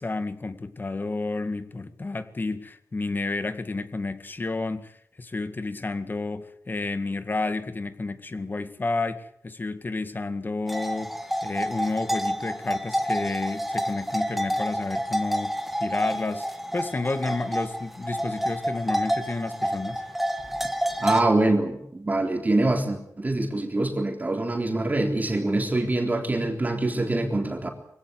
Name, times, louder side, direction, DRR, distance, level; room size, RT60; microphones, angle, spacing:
voice 1, 0.0-11.1 11.4-16.5 16.7-20.0, left 3 dB, 35° left, 11 dB, 2.0 m, -31 dB
sound 1, 10.7-21.2, equal, 5° right, 1.8 m, -29 dB
voice 2, 21.0-27.7, right 2 dB, 25° right, 4 dB, 3.7 m, -24 dB
24.0 x 16.5 x 9.5 m, 0.70 s
wide cardioid pair, 125°, 6 cm